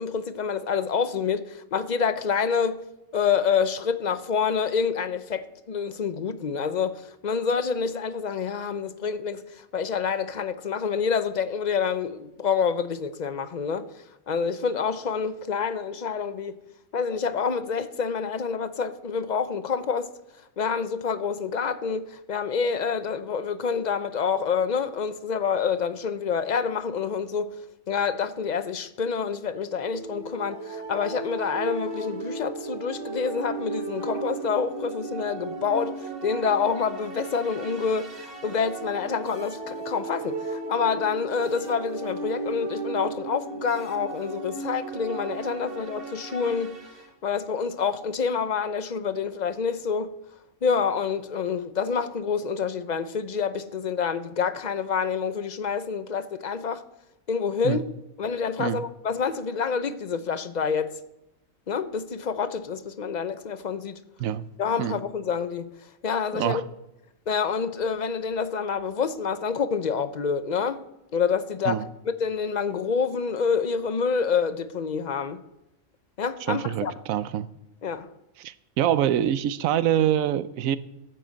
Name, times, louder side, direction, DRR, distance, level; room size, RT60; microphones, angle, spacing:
voice 1, 0.0-2.8 3.1-13.9 14.3-16.6 16.9-20.1 20.6-27.6 27.9-46.8 47.2-50.1 50.6-56.8 57.3-57.8 58.2-61.0 61.7-64.0 64.6-65.7 66.0-66.6 67.3-70.8 71.1-71.8 72.2-75.4 76.2-76.9 77.8-78.1, left 6 dB, 45° left, 0.6 m, -27 dB
sound 1, 29.8-47.1, right 3 dB, 45° right, 1.6 m, -35 dB
voice 2, 76.5-77.5 78.4-80.8, right 10 dB, 90° right, 1.0 m, -25 dB
12.0 x 7.8 x 7.6 m
omnidirectional pair, 1.4 m